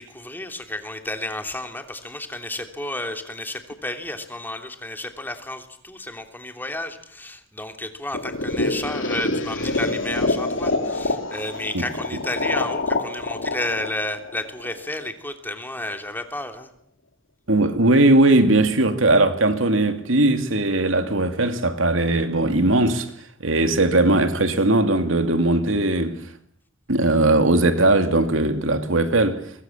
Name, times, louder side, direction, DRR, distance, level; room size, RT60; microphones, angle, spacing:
voice 1, 0.0-16.7, left 1 dB, 10° left, 3.0 m, -32 dB
sound 1, 8.1-15.0, left 2 dB, 70° left, 3.3 m, -26 dB
voice 2, 17.5-23.1 23.4-26.3 26.9-29.5, right 2 dB, 85° right, 2.7 m, -19 dB
30.0 x 24.5 x 7.4 m
head